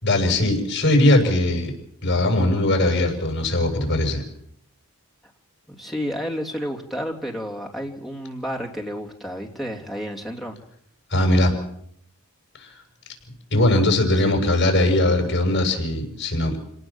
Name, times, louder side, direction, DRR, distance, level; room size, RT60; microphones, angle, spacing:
voice 1, 0.0-1.7 2.0-4.2 11.1-11.5 12.6-12.8 13.5-16.6, left 1 dB, 50° left, 3 dB, 7.0 m, -20 dB
voice 2, 5.7-10.6 14.2-14.4, equal, ahead, -1 dB, 3.1 m, -31 dB
27.5 x 18.5 x 7.3 m, 0.71 s
head